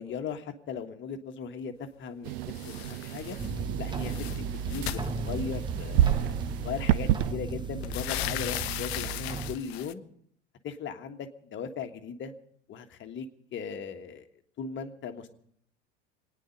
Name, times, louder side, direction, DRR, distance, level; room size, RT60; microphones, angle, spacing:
voice 1, 0.0-2.3 2.6-3.4 3.8-4.1 4.7-10.0 10.6-12.3 12.7-13.2 13.5-14.3 14.6-15.4, left 6 dB, 35° left, 6 dB, 1.6 m, -38 dB
sound 1, 2.2-7.3, right 13 dB, 50° right, 0.6 m, -30 dB
sound 2, 2.5-3.5 3.8-5.8 6.7-6.8 7.2-9.9, left 14 dB, 60° left, 0.7 m, -37 dB
sound 3, 3.4-9.6, right 4 dB, 15° right, 0.9 m, -35 dB
26.0 x 9.7 x 5.3 m, 0.65 s
figure-of-eight pair, 80°, 35 cm